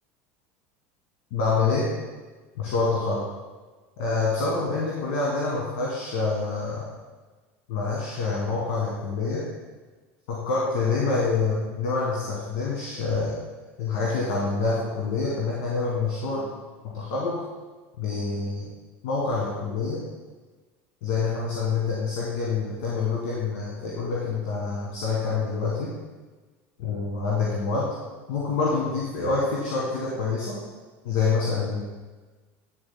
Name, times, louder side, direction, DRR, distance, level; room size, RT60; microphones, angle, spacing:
voice 1, 1.3-1.9 2.6-3.2 4.0-6.8 7.7-9.4 10.3-13.4 13.8-16.5 16.8-17.4 18.0-18.7 19.0-20.0 21.0-25.9 26.8-27.9 28.3-30.6 31.0-31.9, left 4 dB, 65° left, -5 dB, 1.7 m, -26 dB
9.4 x 6.9 x 2.2 m, 1.3 s
hypercardioid pair, 85°, 7 cm